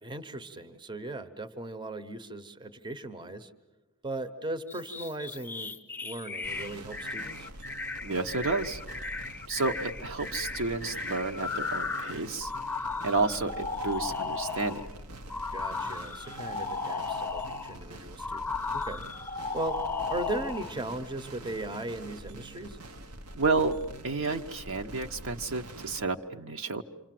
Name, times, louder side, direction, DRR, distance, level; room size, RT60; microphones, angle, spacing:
voice 1, 0.0-3.5 4.0-5.7 6.0-7.5 15.5-19.0 19.3-19.8 20.1-22.8, right 2 dB, 20° right, 11 dB, 0.8 m, -38 dB
sound 1, 4.7-14.9 15.3-17.8 18.2-20.7, left 4 dB, 10° left, 0.8 m, -35 dB
sound 2, 6.4-26.0, right 1 dB, 90° right, 1.2 m, -45 dB
voice 2, 8.0-8.8 9.5-12.5 13.0-14.8 23.3-23.8 24.0-26.8, right 3 dB, 60° right, 6 dB, 0.9 m, -30 dB
28.0 x 25.0 x 7.6 m, 1.1 s
head